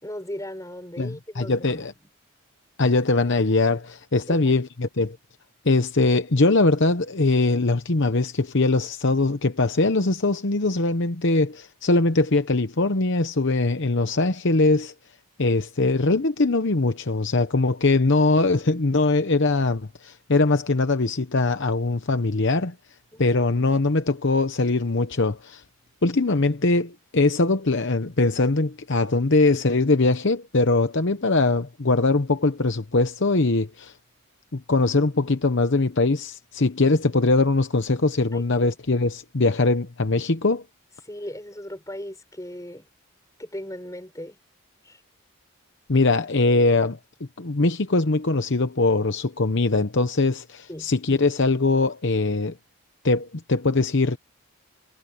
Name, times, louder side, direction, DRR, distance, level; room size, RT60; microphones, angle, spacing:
voice 1, 0.0-1.9 4.3-4.5 23.1-23.4 38.3-38.7 41.0-42.9 43.4-44.4 44.8-45.0 50.7-50.9, left 1 dB, 15° left, 6.5 m, -37 dB
voice 2, 1.0-1.9 2.8-5.2 5.6-14.9 15.4-22.7 23.2-25.6 26.0-33.9 34.5-40.6 45.9-47.0 47.4-52.5 53.0-54.2, left 3 dB, 55° left, 0.9 m, -21 dB
head